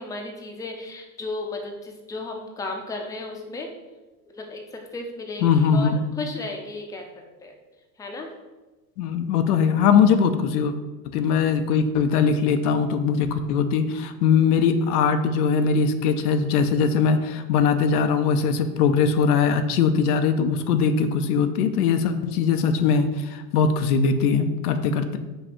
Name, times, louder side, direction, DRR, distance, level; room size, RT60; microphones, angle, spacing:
voice 1, 0.0-3.7 4.4-4.6 4.9-5.4 5.7-5.9 6.2-7.0 7.4-7.5 8.0-8.3, left 2 dB, 10° left, 2 dB, 0.5 m, -34 dB
voice 2, 5.4-6.0 9.0-10.7 11.1-25.2, left 6 dB, 80° left, 8 dB, 0.5 m, -21 dB
5.3 x 2.3 x 2.9 m, 1.2 s
hypercardioid pair, 80°, 45 cm